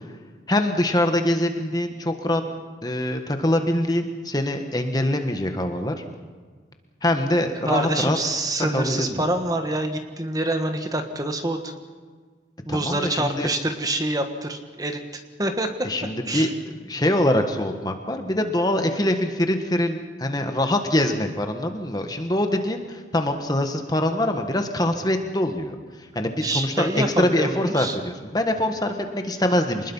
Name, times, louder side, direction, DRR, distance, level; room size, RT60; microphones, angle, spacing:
voice 1, 0.5-2.4 2.8-5.9 7.0-8.2 8.7-9.2 12.7-13.5 15.8-16.5 16.8-25.7 26.1-29.9, left 1 dB, 20° left, 5 dB, 1.5 m, -24 dB
voice 2, 7.6-11.7 12.6-15.9 16.3-16.5 26.4-28.0, right 1 dB, 20° right, 6 dB, 1.5 m, -26 dB
26.0 x 20.5 x 5.6 m, 1.5 s
head